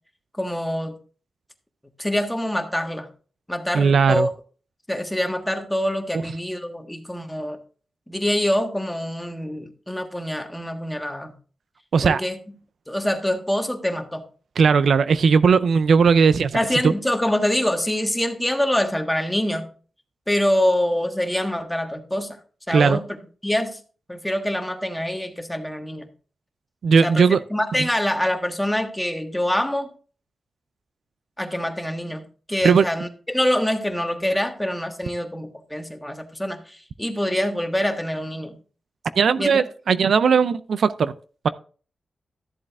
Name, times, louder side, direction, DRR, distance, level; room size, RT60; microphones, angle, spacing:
voice 1, 0.4-0.9 2.0-3.1 3.5-4.3 4.9-7.6 8.1-11.3 12.0-12.4 12.9-14.2 16.5-19.7 20.3-22.4 22.7-23.0 23.4-23.8 24.1-26.1 27.0-29.9 31.4-32.2 32.5-38.6 39.4-39.6, left 1 dB, 5° left, 1.4 m, -25 dB
voice 2, 3.7-4.3 6.1-6.2 11.9-12.2 14.6-16.9 22.7-23.0 26.8-27.4 27.8-27.9 32.6-32.9 39.2-41.1, right 5 dB, 75° right, 0.4 m, -18 dB
13.5 x 7.4 x 2.4 m
cardioid pair, 80°, 0 cm